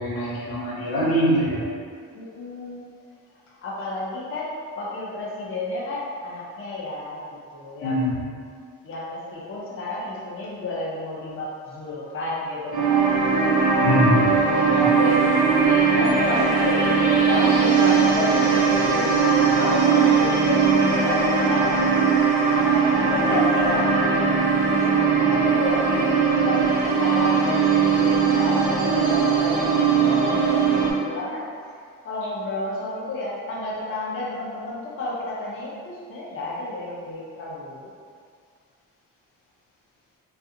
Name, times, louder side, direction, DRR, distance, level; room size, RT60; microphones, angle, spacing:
voice 1, 0.0-1.6 7.8-8.1 13.8-14.3 14.8-14.9, equal, 65° left, -7 dB, 0.9 m, -22 dB
voice 2, 2.1-2.9 3.6-7.2 7.5-8.0 8.8-13.2 14.7-21.9 22.5-24.3 24.7-31.5 32.0-37.9, left 2 dB, 35° left, -7 dB, 0.6 m, -31 dB
sound 1, 12.7-30.9, right 5 dB, 50° right, 0.6 m, -20 dB
2.4 x 2.3 x 2.7 m, 2.1 s
supercardioid pair, 70°, 39 cm